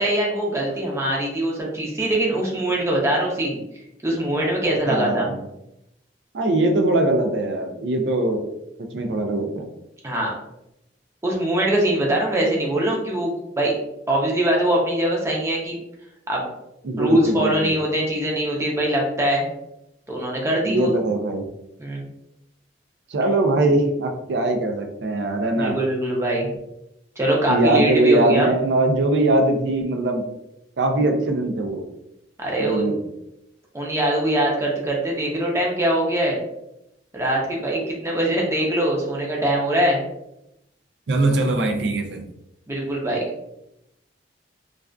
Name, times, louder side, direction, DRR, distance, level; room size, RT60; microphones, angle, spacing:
voice 1, 0.0-3.6 4.0-5.3 10.0-10.3 11.2-13.7 14.1-15.8 16.3-16.5 17.0-19.4 20.1-20.9 21.8-22.0 25.5-26.5 27.2-28.5 32.4-32.8 33.7-36.4 37.1-40.0 42.7-43.2, right 1 dB, 15° right, -2 dB, 0.5 m, -22 dB
voice 2, 4.9-5.4 6.3-8.5 8.8-9.7 16.8-17.7 20.6-21.4 23.1-25.8 27.5-30.2 30.8-31.8 32.6-32.9 41.1-42.2, right 2 dB, 70° right, 4 dB, 0.4 m, -21 dB
2.4 x 2.3 x 2.2 m, 0.85 s
head